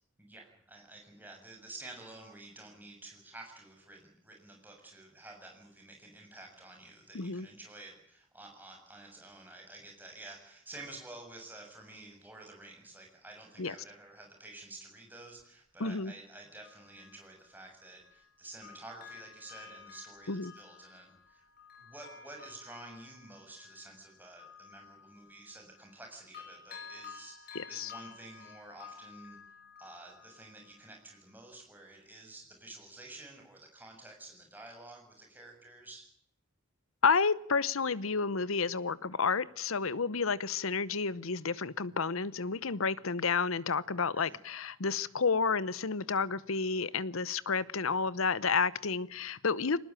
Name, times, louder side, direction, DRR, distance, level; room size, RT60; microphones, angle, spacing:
voice 1, 0.2-21.5 21.8-36.1 44.2-44.4, right 2 dB, 10° right, 7.1 m, -50 dB
voice 2, 7.1-7.5 13.6-13.7 15.8-16.1 20.3-20.5 27.5-27.9 37.0-49.8, left 5 dB, 80° left, 0.9 m, -30 dB
Bell, 15.4-15.5 16.4-18.3 18.6-26.0 26.3-31.0 31.4-31.5, left 6 dB, 45° left, 5.8 m, -53 dB
22.0 x 19.5 x 9.0 m
head